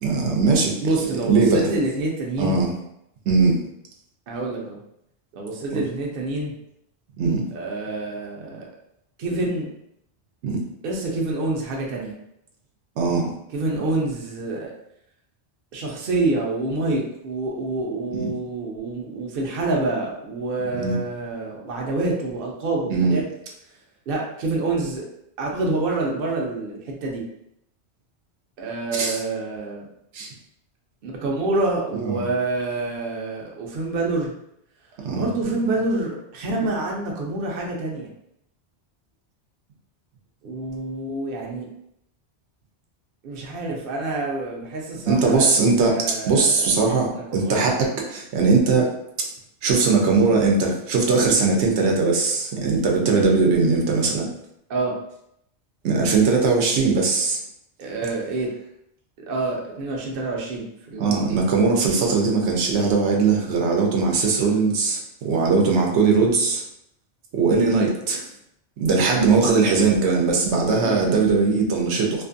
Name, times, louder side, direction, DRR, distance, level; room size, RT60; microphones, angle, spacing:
voice 1, 0.0-0.8 1.3-1.7 2.4-2.7 3.3-3.6 5.7-5.8 7.2-7.4 10.4-10.6 13.0-13.3 18.1-18.3 20.7-20.9 22.9-23.2 28.9-29.2 30.1-30.3 32.0-32.3 35.0-35.3 45.1-48.9 49.2-49.3 49.6-54.3 55.8-57.4 61.0-66.6 67.3-68.2 68.8-72.2, right 4 dB, 90° right, 0 dB, 0.9 m, -20 dB
voice 2, 0.8-2.6 4.3-4.8 5.3-6.5 7.5-8.7 9.2-9.7 10.8-12.1 13.5-14.7 15.7-23.2 24.1-25.1 25.4-27.2 28.6-29.9 31.0-34.3 35.1-38.1 40.4-41.7 43.2-47.6 54.7-55.0 57.8-58.5 59.2-61.4 70.8-71.1, right 2 dB, 60° right, -1 dB, 0.7 m, -27 dB
2.5 x 2.4 x 2.5 m, 0.77 s
omnidirectional pair, 1.1 m